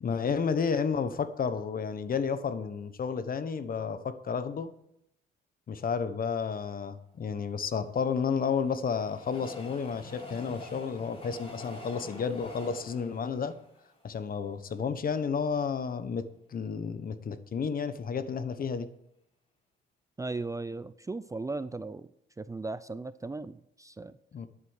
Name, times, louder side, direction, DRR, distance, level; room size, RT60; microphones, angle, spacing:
voice 1, 0.0-4.7 5.7-13.6 14.0-18.9 24.3-24.5, left 6 dB, 45° left, 12 dB, 1.1 m, -31 dB
Train, 7.5-14.8 15.3-15.4 15.6-15.7, left 1 dB, 30° left, 4.1 m, -47 dB
voice 2, 20.2-22.1 22.4-24.2, right 3 dB, 15° right, 14 dB, 0.5 m, -37 dB
11.0 x 8.4 x 6.6 m, 0.79 s
cardioid pair, 90°, 20 cm